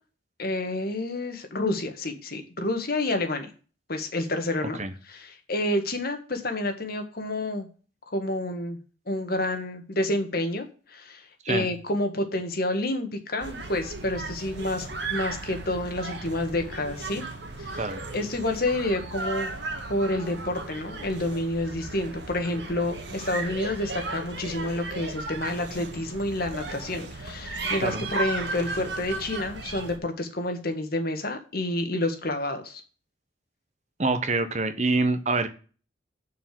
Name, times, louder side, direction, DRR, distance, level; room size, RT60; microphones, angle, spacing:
voice 1, 0.4-3.5 3.9-4.8 5.1-7.7 8.1-8.8 9.1-17.2 17.6-17.9 18.1-19.5 19.9-32.8, left 1 dB, 50° left, 6 dB, 1.7 m, -29 dB
sound 1, 13.4-30.0, right 3 dB, 60° right, 2.1 m, -35 dB
voice 2, 34.0-35.5, right 3 dB, 35° right, 9 dB, 1.1 m, -25 dB
6.9 x 6.7 x 7.7 m, 0.37 s
head